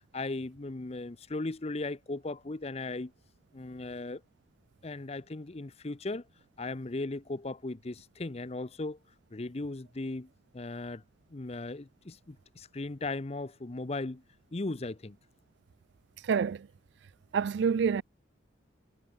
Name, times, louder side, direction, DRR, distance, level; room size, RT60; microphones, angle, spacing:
voice 1, 0.1-3.1 3.5-4.2 4.8-6.2 6.6-9.0 9.3-10.3 10.5-11.0 11.3-14.2 14.5-15.2, left 2 dB, 35° left, 0.7 m, -37 dB
voice 2, 16.2-16.7 17.3-18.0, right 6 dB, 70° right, 0.3 m, -27 dB
head